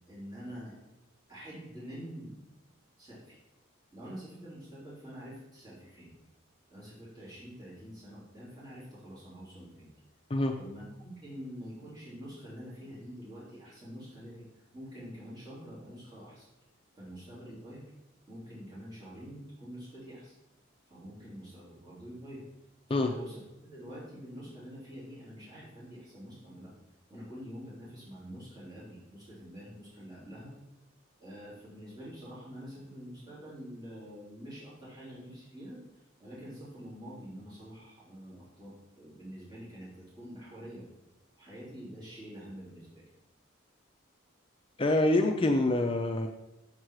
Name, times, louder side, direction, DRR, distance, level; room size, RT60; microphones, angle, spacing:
voice 1, 0.1-0.7 1.3-2.3 3.0-3.4 3.9-6.1 6.7-9.9 10.6-16.5 17.0-17.8 18.3-20.3 20.9-22.4 22.9-26.7 27.1-30.5 31.2-35.8 36.2-40.8 41.4-43.0, equal, 20° right, -9 dB, 3.4 m, -46 dB
voice 2, 44.8-46.3, left 2 dB, 25° left, 4 dB, 0.5 m, -26 dB
7.7 x 7.4 x 4.7 m, 0.97 s
head